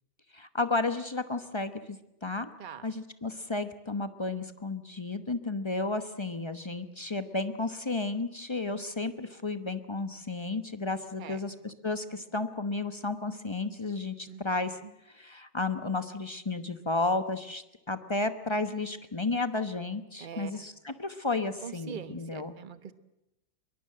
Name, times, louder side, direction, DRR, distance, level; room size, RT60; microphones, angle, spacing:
voice 1, 0.3-2.5 2.8-14.8 15.1-22.5, left 3 dB, 25° left, 10 dB, 0.6 m, -33 dB
voice 2, 20.2-20.6 21.6-22.9, right 7 dB, 30° right, 12 dB, 1.1 m, -42 dB
22.5 x 22.5 x 7.6 m, 0.88 s
omnidirectional pair, 2.2 m